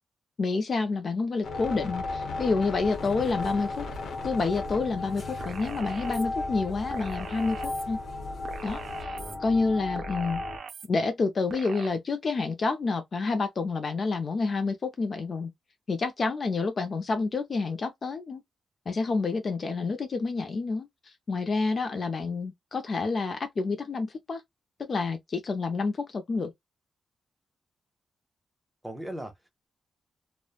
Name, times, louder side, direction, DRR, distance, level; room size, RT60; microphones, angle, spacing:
voice 1, 0.4-3.9 4.2-8.0 8.6-9.1 9.4-10.4 10.9-15.5 15.9-18.4 18.9-20.9 21.3-24.4 24.8-26.5, left 4 dB, 40° left, 0.4 m, -28 dB
sound 1, 1.4-10.6, left 3 dB, 85° left, 0.8 m, -35 dB
sound 2, 2.8-9.0, left 1 dB, 65° left, 1.0 m, -47 dB
sound 3, 5.4-6.2 6.9-7.8 8.4-9.4 10.0-10.9 11.5-11.9, right 6 dB, 70° right, 0.4 m, -41 dB
voice 2, 9.1-9.4 10.0-10.2 28.8-29.5, right 1 dB, 5° right, 0.7 m, -40 dB
2.9 x 2.1 x 2.3 m
wide cardioid pair, 130°, 0 cm